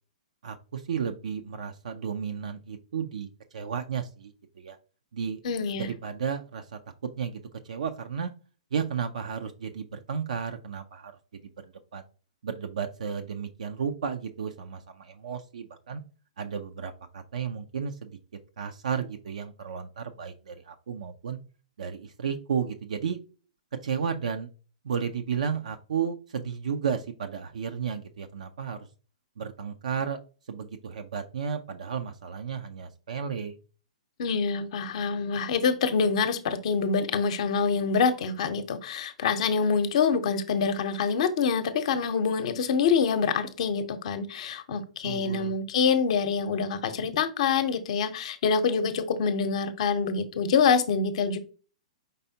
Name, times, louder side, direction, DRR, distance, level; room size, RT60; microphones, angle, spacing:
voice 1, 0.4-4.8 5.1-5.4 5.8-8.3 8.7-11.1 11.4-12.0 12.4-16.0 16.4-18.2 18.6-21.4 21.8-23.2 23.8-24.5 24.8-28.9 29.4-30.2 30.5-33.6 45.0-45.5, right 7 dB, 70° right, 6 dB, 0.5 m, -33 dB
voice 2, 5.4-5.9 34.2-51.4, left 5 dB, 60° left, 10 dB, 0.7 m, -26 dB
5.3 x 3.4 x 2.7 m, 0.36 s
hypercardioid pair, 120°, 4 cm